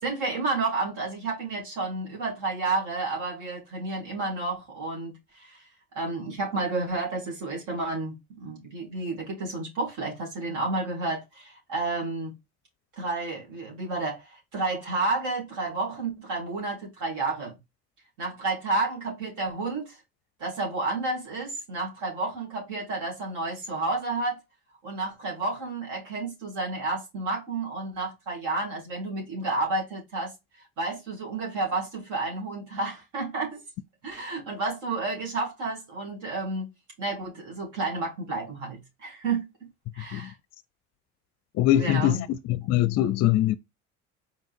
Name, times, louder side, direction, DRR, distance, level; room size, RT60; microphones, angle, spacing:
voice 1, 0.0-5.6 5.9-12.3 13.0-17.5 18.2-20.0 20.4-24.4 24.8-30.3 30.8-33.6 34.0-36.7 37.0-39.5 39.9-40.3 41.8-42.3, right 3 dB, 65° right, 2.5 m, -31 dB
voice 2, 41.5-43.6, left 13 dB, 55° left, 0.5 m, -23 dB
4.5 x 3.6 x 2.5 m
supercardioid pair, 75°, 32 cm